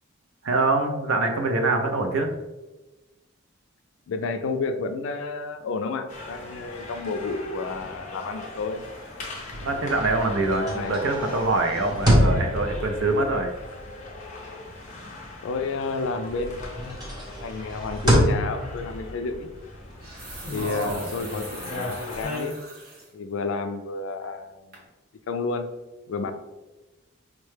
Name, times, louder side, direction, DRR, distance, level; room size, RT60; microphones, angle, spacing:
voice 1, 0.4-2.3 9.6-13.5 20.6-21.1, right 2 dB, 75° right, 4 dB, 0.5 m, -24 dB
voice 2, 4.1-8.8 10.7-11.0 15.4-17.0 17.4-19.5 20.5-22.5 23.1-24.8 25.3-25.7 26.1-26.3, left 4 dB, 70° left, 8 dB, 0.3 m, -31 dB
sound 1, 6.1-22.4, left 2 dB, 35° left, 0.7 m, -39 dB
Recliner Couch Closes, 9.4-15.9 16.2-21.6, equal, 20° right, 0.8 m, -28 dB
sound 2, 18.6-18.8 19.8-23.1 23.6-23.7 24.2-24.5 24.7-24.9, right 2 dB, 45° right, 0.9 m, -43 dB
4.7 x 2.1 x 3.2 m, 1.1 s
head